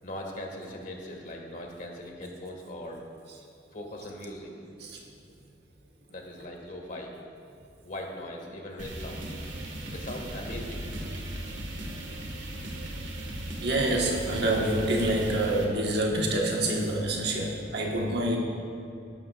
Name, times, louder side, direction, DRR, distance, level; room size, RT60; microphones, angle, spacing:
voice 1, 0.0-3.0 3.7-4.5 6.1-7.1 7.8-9.4 9.9-10.9, left 1 dB, 45° left, 1 dB, 1.9 m, -40 dB
sound 1, 8.8-15.7, right 1 dB, 85° right, 1.8 m, -37 dB
voice 2, 13.6-18.4, right 1 dB, 60° right, -1 dB, 1.5 m, -27 dB
19.0 x 11.0 x 2.5 m, 2.6 s
head